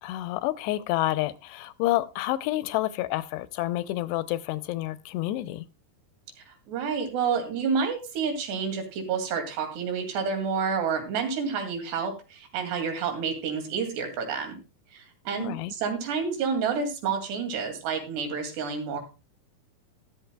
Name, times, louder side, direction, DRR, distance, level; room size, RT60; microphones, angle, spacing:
voice 1, 0.0-5.7 15.4-15.7, left 16 dB, 85° left, 2.8 m, -29 dB
voice 2, 6.5-14.6 14.9-19.0, right 6 dB, 85° right, 4.6 m, -29 dB
13.5 x 13.0 x 2.3 m
omnidirectional pair, 4.7 m